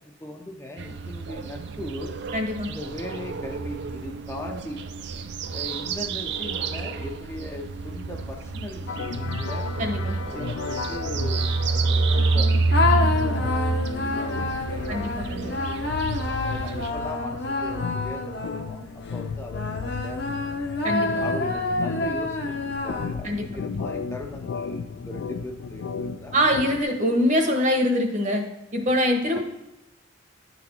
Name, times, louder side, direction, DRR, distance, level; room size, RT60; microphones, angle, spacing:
voice 1, 0.0-2.2 2.6-4.8 5.5-9.7 10.3-12.5 12.9-13.6 13.9-15.9 16.4-20.8 21.2-26.4 29.3-29.4, left 1 dB, 15° left, 1 dB, 0.5 m, -39 dB
sound 1, 0.8-16.9, right 3 dB, 60° right, 0.4 m, -28 dB
voice 2, 2.3-2.7 9.8-10.2 14.9-15.5 20.8-21.4 23.2-23.5 23.7-23.8 26.3-28.4 28.7-29.4, equal, 40° right, 4 dB, 1.0 m, -24 dB
sound 2, 8.9-26.8, left 5 dB, 75° left, 0.4 m, -34 dB
sound 3, 12.7-18.9 19.5-23.4, left 3 dB, 60° left, 0.8 m, -28 dB
10.0 x 4.1 x 4.3 m, 0.95 s
head